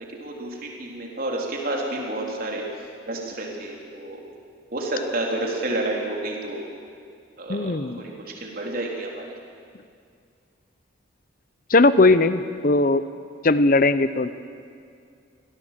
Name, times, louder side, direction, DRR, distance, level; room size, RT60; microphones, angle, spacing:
voice 1, 0.1-2.7 3.1-4.2 4.7-6.6 7.4-9.3, right 2 dB, 50° right, -1 dB, 3.8 m, -30 dB
voice 2, 7.5-8.0 11.7-13.0 13.4-14.3, left 2 dB, 45° left, 13 dB, 0.7 m, -18 dB
24.5 x 17.5 x 7.6 m, 2.3 s
head